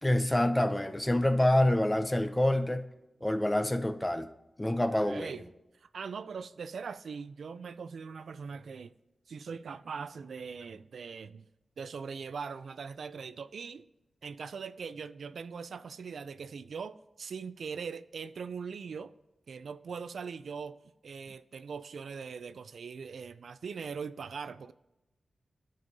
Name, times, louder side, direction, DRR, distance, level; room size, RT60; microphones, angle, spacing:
voice 1, 0.0-2.8 3.2-4.3 4.6-5.3, left 1 dB, 10° left, 0.5 m, -27 dB
voice 2, 4.8-5.4 5.8-8.9 9.3-11.5 11.8-13.9 14.2-19.1 19.5-20.8 21.0-24.7, right 5 dB, 80° right, 0.3 m, -41 dB
13.0 x 5.3 x 2.7 m
wide cardioid pair, 155°, 0 cm